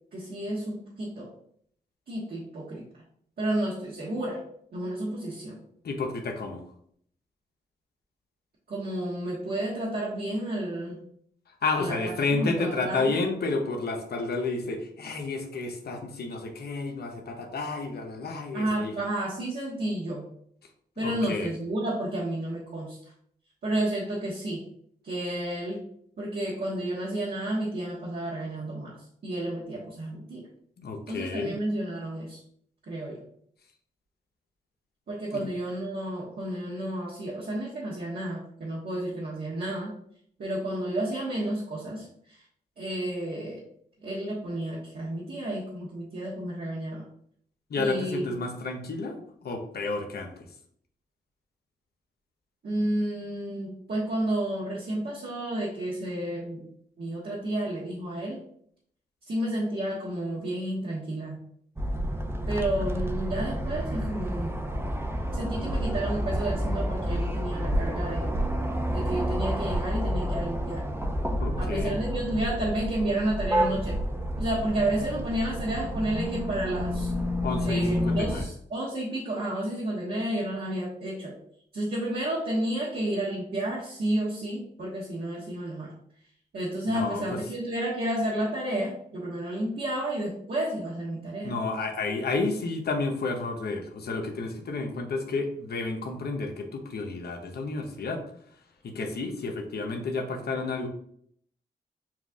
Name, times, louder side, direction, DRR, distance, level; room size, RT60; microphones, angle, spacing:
voice 1, 0.1-1.3 2.1-2.8 3.4-4.4 4.7-5.6 8.7-11.0 11.8-13.1 18.5-20.3 21.0-23.0 23.6-24.7 25.0-25.8 26.2-29.0 29.2-30.5 31.1-32.4 32.9-33.2 35.1-39.9 40.4-42.4 42.8-43.6 44.0-47.0 47.7-48.3 52.6-56.7 57.0-58.4 59.2-61.4 62.5-64.6 65.3-68.3 68.9-70.8 71.6-74.0 74.4-77.1 77.6-81.3 81.7-85.9 86.5-91.5, right 1 dB, 65° right, -7 dB, 1.3 m, -31 dB
voice 2, 5.8-6.6 11.6-18.9 21.0-21.5 30.8-31.6 35.3-35.5 47.7-50.5 71.4-72.0 77.4-78.5 86.9-87.4 91.4-98.2 98.8-100.9, left 3 dB, 70° left, 4 dB, 0.9 m, -31 dB
sound 1, 61.8-78.4, equal, 15° right, 0.7 m, -29 dB
7.2 x 2.4 x 2.4 m, 0.65 s
cardioid pair, 55°, 17 cm